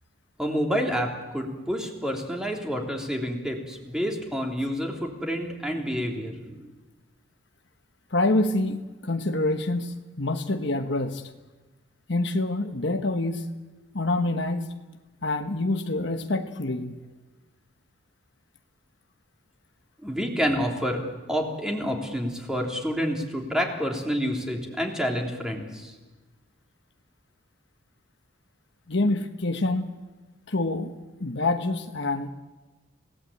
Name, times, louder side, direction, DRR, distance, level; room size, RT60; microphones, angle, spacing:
voice 1, 0.4-6.7 20.0-25.9, equal, 5° right, 1 dB, 3.3 m, -28 dB
voice 2, 8.1-11.2 12.1-13.5 13.9-14.7 15.2-16.9 28.9-29.9 30.5-30.9 31.2-32.3, left 2 dB, 60° left, 6 dB, 1.2 m, -26 dB
28.0 x 18.0 x 8.6 m, 1.2 s
head